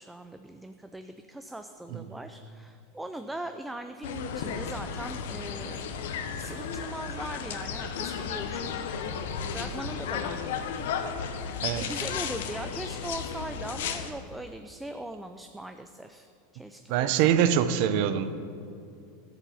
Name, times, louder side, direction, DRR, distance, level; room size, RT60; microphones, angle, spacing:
voice 1, 0.0-5.8 6.3-8.9 9.5-10.9 11.2-17.4, right 1 dB, 5° right, 7 dB, 0.4 m, -40 dB
sound 1, 4.0-14.1, left 6 dB, 80° left, 1.0 m, -34 dB
voice 2, 16.9-18.3, right 9 dB, 60° right, 12 dB, 0.7 m, -24 dB
13.0 x 7.4 x 7.0 m, 2.6 s
supercardioid pair, 135°, 0 cm